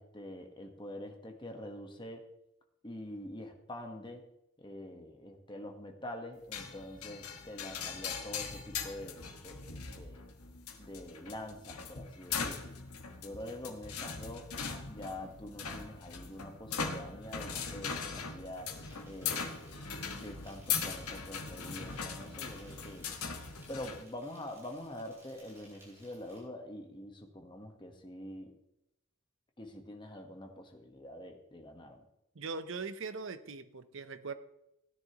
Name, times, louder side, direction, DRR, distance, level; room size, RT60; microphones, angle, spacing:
voice 1, 0.0-2.3 2.8-4.2 4.6-9.6 9.9-10.2 10.8-12.8 13.2-14.5 14.9-18.7 19.0-19.8 20.0-23.1 23.7-28.6 29.6-32.0, left 1 dB, 20° left, 4 dB, 1.2 m, -45 dB
sound 1, 6.5-24.0, left 6 dB, 90° left, 1.3 m, -40 dB
Insect, 18.8-26.4, equal, 10° right, 4.5 m, -61 dB
voice 2, 32.3-34.3, right 4 dB, 60° right, 11 dB, 0.7 m, -40 dB
16.0 x 9.9 x 3.0 m, 0.85 s
head